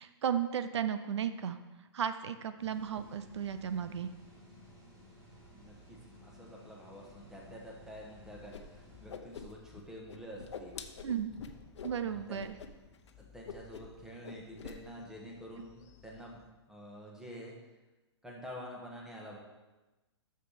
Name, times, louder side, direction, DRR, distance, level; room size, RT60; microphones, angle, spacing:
voice 1, 0.0-1.6 1.9-4.1 11.0-11.3 11.8-12.6, right 8 dB, 75° right, 11 dB, 0.6 m, -34 dB
sound 1, 2.6-9.1, equal, 25° right, 2.8 m, -56 dB
voice 2, 5.5-10.8 12.0-12.4 13.2-17.5 18.2-19.4, equal, 5° right, -2 dB, 1.5 m, -48 dB
sound 2, 7.0-16.5, left 6 dB, 20° left, 0.6 m, -60 dB
Whoosh swoosh swish, 8.5-8.6 8.9-9.8 10.1-12.0 12.4-12.7 12.9-13.1 13.5-14.0 14.2-14.8, left 6 dB, 80° left, 0.9 m, -45 dB
6.7 x 6.6 x 6.7 m, 1.1 s
hypercardioid pair, 150°, 15 cm